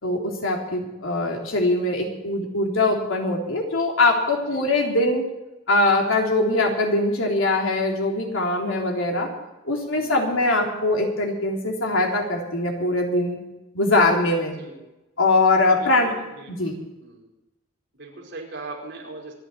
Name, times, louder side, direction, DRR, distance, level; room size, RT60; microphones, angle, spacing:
voice 1, 0.0-5.2 5.7-9.3 9.7-13.4 13.7-14.5 15.2-16.2 16.5-16.7, left 2 dB, 85° left, 0 dB, 3.7 m, -22 dB
voice 2, 4.3-4.7 9.9-10.5 14.4-14.8 15.7-17.3 18.0-19.3, right 3 dB, 55° right, -2 dB, 5.0 m, -41 dB
25.5 x 11.0 x 4.5 m, 0.98 s
head